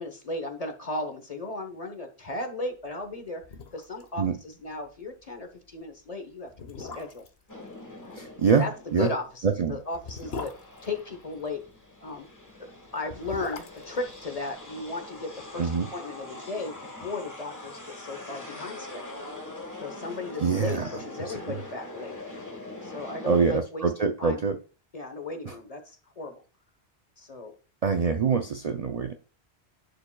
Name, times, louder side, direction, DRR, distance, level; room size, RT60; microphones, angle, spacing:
voice 1, 0.0-3.4 3.7-7.2 8.0-8.3 8.6-10.5 10.8-11.6 12.0-12.3 12.9-19.2 19.8-22.2 22.8-23.9 24.2-24.4 24.9-26.4 27.2-27.5, left 3 dB, 35° left, 6 dB, 1.1 m, -36 dB
sound 1, 3.1-3.2 3.4-4.1 4.4-4.5 4.9-5.0 5.7-5.8 6.5-7.4 8.9-11.6 12.9-15.1 15.4-15.5, left 4 dB, 70° left, 1.1 m, -40 dB
sound 2, 7.5-9.3 9.8-23.6, left 2 dB, 15° left, 1.4 m, -43 dB
voice 2, 8.1-8.7 8.9-9.1 9.4-9.8 15.6-15.9 20.4-21.0 21.3-21.6 23.3-24.6 25.4-25.5 27.8-29.1, right 5 dB, 45° right, 5 dB, 0.5 m, -25 dB
10.5 x 5.0 x 2.2 m, 0.34 s
omnidirectional pair, 1.1 m